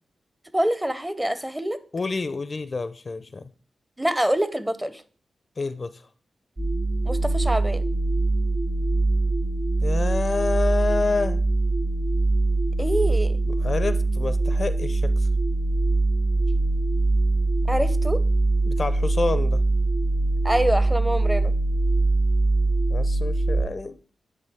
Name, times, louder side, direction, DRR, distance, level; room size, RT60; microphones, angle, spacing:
voice 1, 0.5-1.8 4.0-5.0 7.0-7.9 12.8-13.4 17.7-18.2 20.4-21.5, right 1 dB, 10° right, 12 dB, 0.7 m, -25 dB
voice 2, 1.9-3.5 5.6-6.0 9.8-11.4 13.6-15.1 18.7-19.6 22.9-24.0, left 3 dB, 50° left, 13 dB, 0.4 m, -28 dB
sound 1, 6.6-23.6, right 2 dB, 50° right, 2.0 m, -22 dB
10.0 x 3.4 x 3.5 m, 0.42 s
cardioid pair, 50°, 0 cm